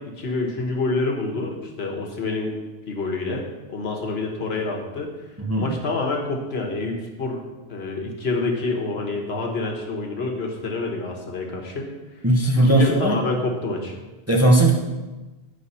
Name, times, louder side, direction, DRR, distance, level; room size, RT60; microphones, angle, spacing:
voice 1, 0.0-2.6 2.9-3.4 3.7-5.1 5.6-7.4 7.7-11.9 12.6-14.0, left 3 dB, 70° left, 1 dB, 1.3 m, -27 dB
voice 2, 5.4-5.7 12.2-13.2 14.3-14.7, right 1 dB, 15° right, -1 dB, 0.7 m, -17 dB
9.9 x 3.4 x 5.4 m, 1.2 s
omnidirectional pair, 1.1 m